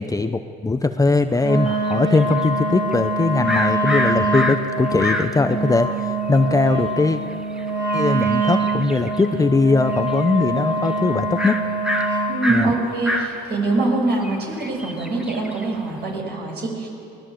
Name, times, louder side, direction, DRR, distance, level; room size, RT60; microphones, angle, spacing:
voice 1, 0.0-7.2 7.9-11.6 12.5-12.7, left 3 dB, 15° left, 9 dB, 0.8 m, -20 dB
sound 1, 1.3-5.6 6.0-6.1 6.2-9.4 9.7-10.6 10.8-10.9 11.4-16.1, equal, 5° right, 2.1 m, -28 dB
Wind instrument woodwind instrument, 1.4-12.4, right 2 dB, 70° right, 4.1 m, -24 dB
voice 2, 12.3-16.9, right 2 dB, 55° right, 0 dB, 6.6 m, -23 dB
22.0 x 18.0 x 7.7 m, 2.6 s
supercardioid pair, 80°, 20 cm